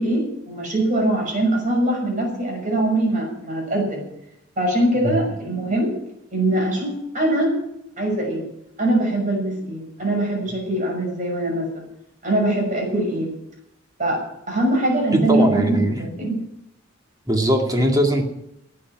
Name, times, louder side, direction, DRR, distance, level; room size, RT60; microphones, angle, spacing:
voice 1, 0.0-4.1 4.6-5.9 6.3-7.5 8.0-8.5 8.8-11.8 12.2-13.3 14.0-16.4, right 1 dB, 40° right, 0 dB, 6.5 m, -22 dB
voice 2, 15.1-16.0 17.3-18.2, right 1 dB, 20° right, 2 dB, 2.2 m, -20 dB
13.0 x 8.6 x 9.8 m, 0.81 s
head